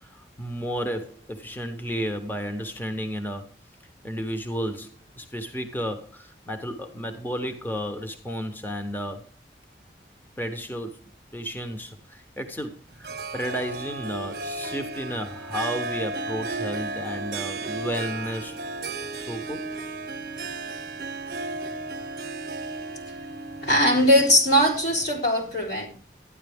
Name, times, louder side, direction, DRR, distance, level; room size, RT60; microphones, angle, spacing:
voice 1, 0.0-3.5 4.0-9.3 10.4-18.6 19.3-19.7, equal, 10° left, 0.9 m, -32 dB
Harp, 13.0-25.2, right 3 dB, 55° right, 0.9 m, -34 dB
voice 2, 23.6-25.9, equal, 70° left, 3.8 m, -20 dB
12.5 x 10.0 x 3.5 m
head